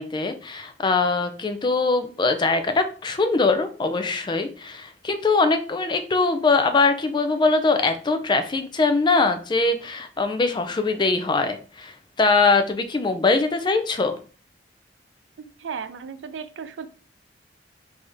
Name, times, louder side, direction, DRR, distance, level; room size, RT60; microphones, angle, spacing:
voice 1, 0.0-14.1, left 3 dB, 25° left, 0.4 m, -22 dB
voice 2, 15.4-16.9, right 6 dB, 85° right, 0.4 m, -35 dB
3.5 x 3.4 x 2.6 m
head